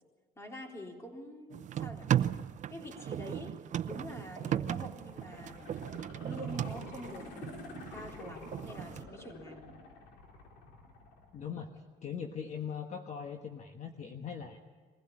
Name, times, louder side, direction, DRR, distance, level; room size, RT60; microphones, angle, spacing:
voice 1, 0.4-2.1 2.7-3.6 3.8-5.8 6.2-9.7, equal, 15° left, 1 dB, 3.8 m, -46 dB
sound 1, 1.5-9.0, right 10 dB, 45° right, 0.6 m, -36 dB
sound 2, 5.0-11.9 12.3-12.4, left 3 dB, 90° left, 3.4 m, -49 dB
voice 2, 11.3-11.7 12.0-14.6, left 7 dB, 45° left, 4 dB, 1.3 m, -40 dB
22.5 x 16.0 x 8.8 m, 1.5 s
cardioid pair, 110°, 17 cm